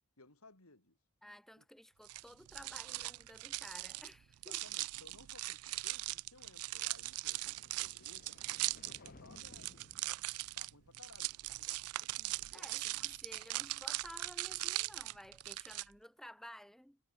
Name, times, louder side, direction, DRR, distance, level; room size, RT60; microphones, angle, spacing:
voice 1, 0.2-1.0 1.6-1.7 4.4-9.8 10.6-12.7, left 3 dB, 80° left, 4.6 m, -61 dB
voice 2, 1.2-4.6 12.5-17.0, equal, ahead, 1.3 m, -54 dB
sound 1, 2.0-15.8, right 19 dB, 80° right, 0.4 m, -40 dB
sound 2, 7.2-11.5, left 2 dB, 40° left, 1.2 m, -61 dB
head